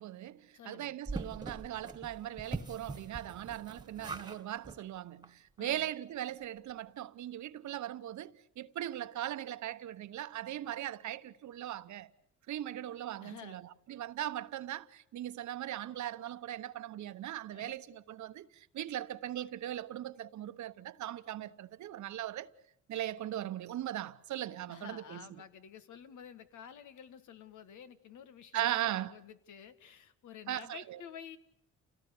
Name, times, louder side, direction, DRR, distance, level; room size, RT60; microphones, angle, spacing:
voice 1, 0.0-12.1 12.5-13.6 13.9-22.5 22.9-25.3 28.5-29.1 30.5-31.0, right 12 dB, 70° right, 1.1 m, -39 dB
voice 2, 0.5-1.0 5.6-5.9 13.2-13.6 17.5-17.8 24.7-31.4, left 8 dB, 75° left, 1.8 m, -51 dB
sound 1, 1.1-4.4 4.6-4.8 5.2-5.3 5.6-5.7, right 3 dB, 15° right, 1.7 m, -42 dB
29.0 x 18.0 x 8.5 m
cardioid pair, 90°, 30 cm